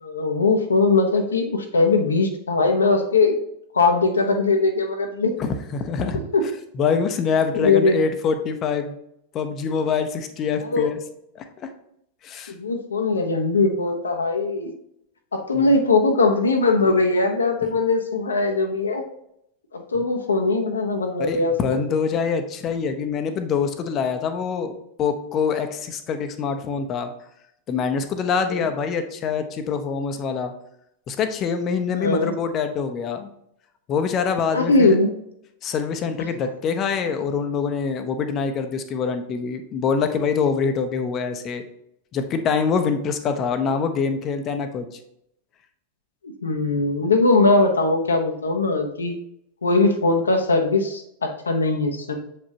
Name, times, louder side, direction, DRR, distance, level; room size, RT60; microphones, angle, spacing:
voice 1, 0.0-3.3 3.7-5.3 6.3-6.4 7.5-8.0 10.7-10.9 12.5-14.7 15.3-19.0 19.7-21.5 28.5-28.6 31.9-32.3 34.5-35.1 46.4-49.2 49.6-52.2, left 3 dB, 75° left, 3 dB, 0.8 m, -20 dB
voice 2, 5.4-6.2 6.7-8.9 9.3-11.0 11.3-11.7 12.2-12.5 15.5-15.7 19.9-20.0 21.2-27.1 27.7-30.5 31.1-33.3 33.9-35.0 35.6-41.6 42.1-44.9, left 6 dB, 30° left, 8 dB, 0.7 m, -25 dB
7.0 x 5.0 x 2.8 m, 0.76 s
figure-of-eight pair, 90°, 0 cm